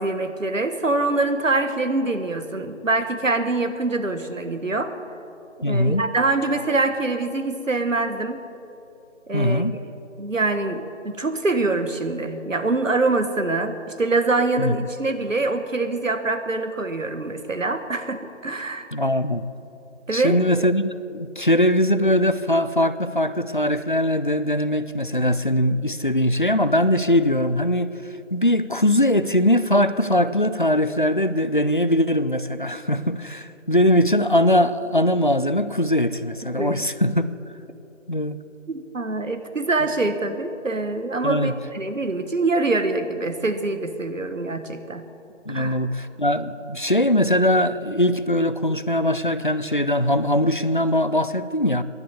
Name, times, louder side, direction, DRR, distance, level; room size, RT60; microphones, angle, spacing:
voice 1, 0.0-4.9 5.6-8.4 9.3-9.6 10.2-18.9 20.1-20.4 36.6-36.8 38.7-45.1 45.5-45.8, right 2 dB, 85° right, 9 dB, 1.5 m, -24 dB
voice 2, 5.6-6.0 9.3-9.7 14.6-14.7 18.9-19.5 20.1-27.9 28.3-37.3 38.1-38.4 41.2-41.5 45.5-51.8, left 1 dB, 45° left, 14 dB, 0.4 m, -21 dB
13.5 x 11.0 x 6.8 m, 2.8 s
figure-of-eight pair, 170°, 38 cm